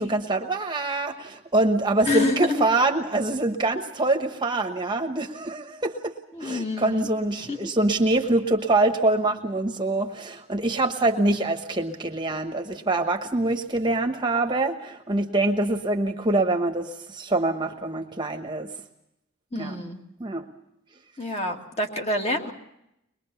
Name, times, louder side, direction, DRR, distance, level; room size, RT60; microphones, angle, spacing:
voice 1, 0.0-6.1 6.4-18.7 19.5-19.8 20.2-20.5, right 2 dB, 20° right, 5 dB, 1.2 m, -25 dB
voice 2, 2.0-2.6 6.3-7.1 7.5-7.7 19.5-20.0 21.2-22.5, left 2 dB, 30° left, 2 dB, 2.2 m, -27 dB
23.0 x 21.5 x 7.0 m, 0.82 s
head